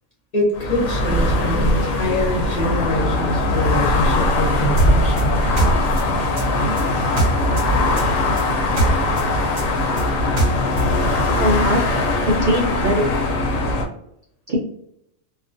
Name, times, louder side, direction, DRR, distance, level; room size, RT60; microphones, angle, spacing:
voice 1, 0.3-5.4, left 1 dB, 40° left, -5 dB, 0.6 m, -24 dB
sound 1, 0.5-13.8, left 1 dB, 80° left, 1.0 m, -20 dB
sound 2, 4.8-7.7 8.0-10.9, right 2 dB, 50° right, 0.7 m, -22 dB
voice 2, 11.3-12.0 12.3-13.0 14.5-14.6, equal, 75° right, -3 dB, 0.4 m, -21 dB
2.4 x 2.3 x 2.4 m, 0.75 s
omnidirectional pair, 1.4 m